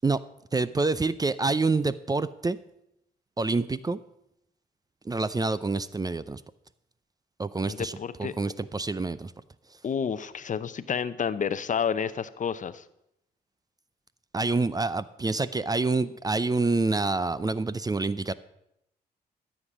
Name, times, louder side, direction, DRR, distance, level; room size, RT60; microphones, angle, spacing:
voice 1, 0.5-2.6 3.4-4.0 5.0-6.4 7.4-9.3 14.3-18.3, right 3 dB, 20° right, 16 dB, 0.6 m, -27 dB
voice 2, 7.6-8.3 9.8-12.8, left 7 dB, 45° left, 14 dB, 0.7 m, -30 dB
13.5 x 7.3 x 6.3 m, 0.80 s
supercardioid pair, 65°, 17 cm